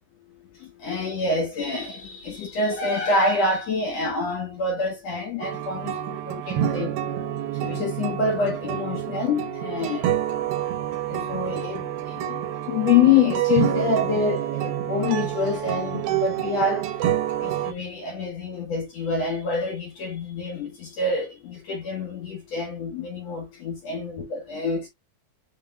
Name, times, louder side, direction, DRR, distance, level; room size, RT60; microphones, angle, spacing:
voice 1, 0.8-5.9 6.3-6.9 7.6-10.1 11.1-16.9 17.4-24.9, left 4 dB, 65° left, 1.8 m, -26 dB
sound 1, 5.4-17.7, right 11 dB, 80° right, 2.6 m, -28 dB
7.5 x 3.0 x 2.3 m
omnidirectional pair, 4.1 m